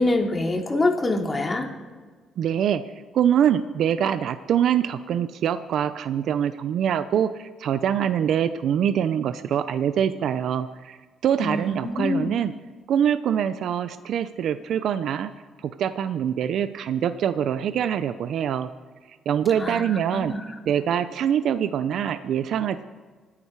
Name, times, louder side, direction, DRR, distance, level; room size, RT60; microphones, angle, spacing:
voice 1, 0.0-1.7 11.4-12.4 19.6-19.8 20.1-20.4, left 2 dB, 25° left, 2 dB, 2.7 m, -25 dB
voice 2, 2.4-2.8 3.1-11.0 11.2-12.5 12.9-15.3 15.6-18.7 19.3-20.3 20.7-22.8, right 9 dB, 70° right, 11 dB, 0.6 m, -24 dB
25.5 x 9.8 x 4.7 m, 1.5 s
cardioid pair, 90°, 0 cm